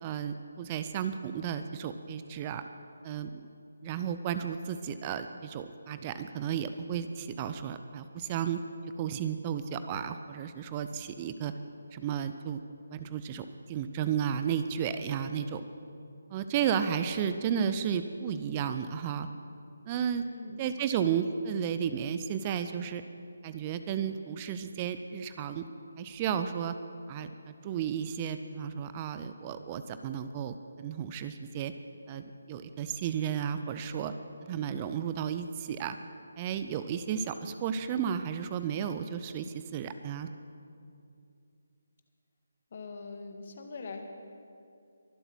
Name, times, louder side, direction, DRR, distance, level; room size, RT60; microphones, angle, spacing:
voice 1, 0.0-2.6 3.0-3.4 3.8-8.6 9.0-11.5 11.9-12.6 12.9-15.6 16.3-19.3 19.9-20.2 20.6-23.0 23.4-25.6 26.0-26.7 27.1-31.7 32.1-34.1 34.5-36.0 36.4-40.3, right 8 dB, 25° right, 10 dB, 0.5 m, -33 dB
voice 2, 20.2-20.6 42.7-44.0, left 4 dB, 45° left, 4 dB, 1.8 m, -42 dB
23.5 x 7.9 x 6.2 m, 2.5 s
figure-of-eight pair, 150°, 0 cm